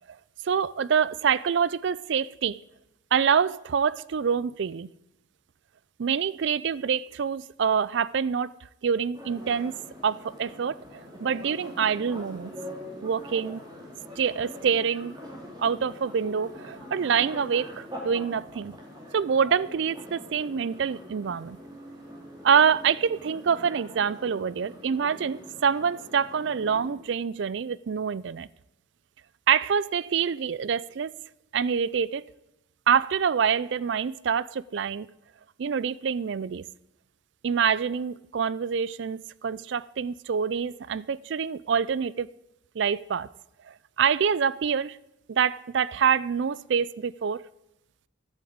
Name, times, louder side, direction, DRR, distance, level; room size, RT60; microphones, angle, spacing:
voice 1, 0.4-2.6 3.1-4.9 6.0-8.5 8.8-9.7 10.0-12.5 13.0-13.6 14.2-15.1 15.6-18.8 19.1-21.6 22.4-28.5 29.5-31.1 31.5-32.2 32.9-35.1 35.6-36.6 37.4-42.3 42.8-43.3 43.7-45.0 45.3-47.4, right 7 dB, 55° right, 0.4 m, -26 dB
sound 1, 9.1-26.9, left 1 dB, 20° right, 2.8 m, -43 dB
11.5 x 8.7 x 7.9 m
head